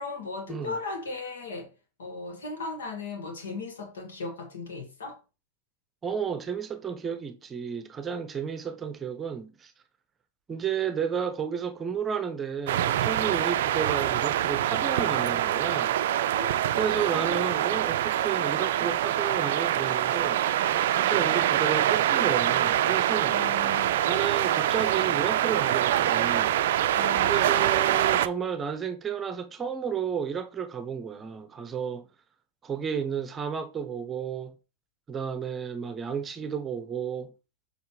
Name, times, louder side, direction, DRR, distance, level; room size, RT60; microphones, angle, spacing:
voice 1, 0.0-1.7 2.0-5.2 16.4-16.5 17.1-17.4 23.3-24.1 27.0-27.7, left 3 dB, 70° left, 2.1 m, -37 dB
voice 2, 6.0-9.7 10.5-16.0 16.7-20.4 20.9-23.4 24.1-26.5 27.3-32.1 32.6-34.5 35.1-37.3, right 7 dB, 20° right, 0.8 m, -32 dB
sound 1, 12.7-28.3, right 12 dB, 60° right, 0.4 m, -25 dB
7.0 x 5.1 x 3.2 m
figure-of-eight pair, 95°, 0 cm